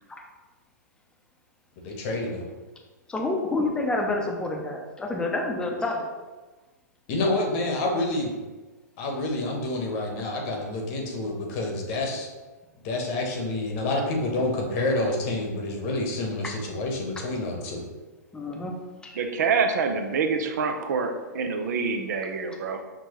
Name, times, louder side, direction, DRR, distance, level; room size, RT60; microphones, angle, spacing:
voice 1, 1.8-2.4 7.1-8.4 9.0-12.3 12.8-17.8, left 2 dB, 45° left, 1 dB, 1.0 m, -28 dB
voice 2, 3.1-6.1 18.3-18.7 19.0-19.2, left 2 dB, 10° left, 1 dB, 0.6 m, -28 dB
voice 3, 19.2-22.8, right 5 dB, 65° right, 5 dB, 0.5 m, -26 dB
6.0 x 2.2 x 3.0 m, 1.2 s
hypercardioid pair, 115°, 10 cm